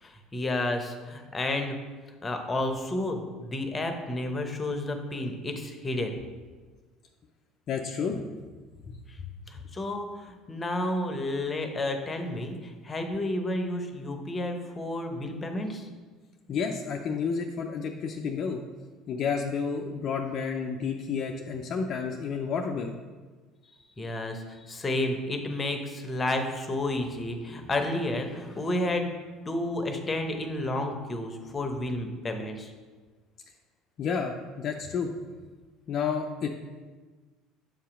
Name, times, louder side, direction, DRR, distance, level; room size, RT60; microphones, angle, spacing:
voice 1, 0.0-1.8 2.2-6.2 9.5-15.9 24.0-32.7, left 1 dB, 25° left, 5 dB, 0.8 m, -31 dB
voice 2, 7.7-8.2 8.9-9.0 16.5-18.6 19.1-22.9 34.0-35.1 35.9-36.5, left 6 dB, 50° left, 1 dB, 0.5 m, -30 dB
7.1 x 2.8 x 5.0 m, 1.4 s
supercardioid pair, 85°, 0 cm